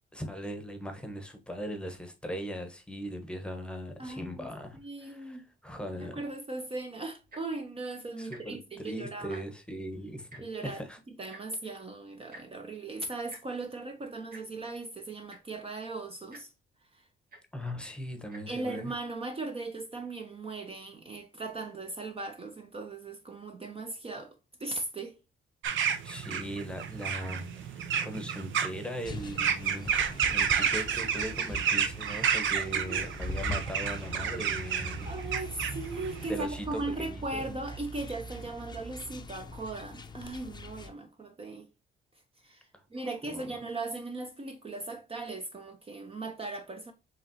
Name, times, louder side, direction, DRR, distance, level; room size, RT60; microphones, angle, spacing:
voice 1, 0.1-6.2 8.2-11.0 17.5-18.9 25.6-35.1 36.3-37.5 42.7-43.5, equal, 5° left, 1.0 m, -39 dB
voice 2, 4.0-4.5 4.8-5.5 6.0-9.4 10.4-10.8 11.2-16.5 16.9-17.0 18.5-25.2 32.7-33.0 35.0-41.7 42.4-46.9, right 2 dB, 30° right, 0.7 m, -38 dB
Tick-tock, 7.2-7.6 8.2-8.4 8.7-8.9 9.2-9.7 10.3-10.4 11.3-11.4 12.3-12.4 13.3-13.4 14.3-14.4 15.0-15.1 15.3-15.6 16.3-16.4 17.3-17.4 18.2-18.4 19.1-19.2, right 2 dB, 45° right, 2.0 m, -49 dB
sound 1, 25.6-36.3, right 8 dB, 75° right, 0.6 m, -31 dB
sound 2, 29.0-40.9, left 1 dB, 20° left, 0.6 m, -42 dB
5.0 x 3.1 x 2.8 m
cardioid pair, 90°, 20 cm